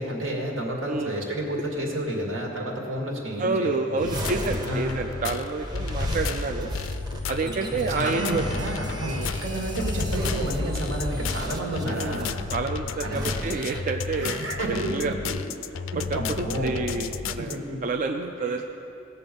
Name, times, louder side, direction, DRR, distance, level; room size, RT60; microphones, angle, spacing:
voice 1, 0.0-4.1 4.6-5.0 7.4-12.5 13.0-13.4 14.1-15.3 16.1-16.8 17.3-17.8 18.4-18.5, right 1 dB, 80° right, 0 dB, 2.1 m, -30 dB
voice 2, 3.4-6.7 7.3-8.4 9.0-9.3 11.8-14.4 14.7-15.1 16.0-18.6, right 3 dB, 40° right, 3 dB, 0.4 m, -29 dB
sound 1, 4.0-17.6, left 6 dB, 75° left, 0.4 m, -33 dB
sound 2, 4.0-12.3 13.0-13.8, equal, 20° right, 1.0 m, -33 dB
18.0 x 6.9 x 5.3 m, 2.9 s
head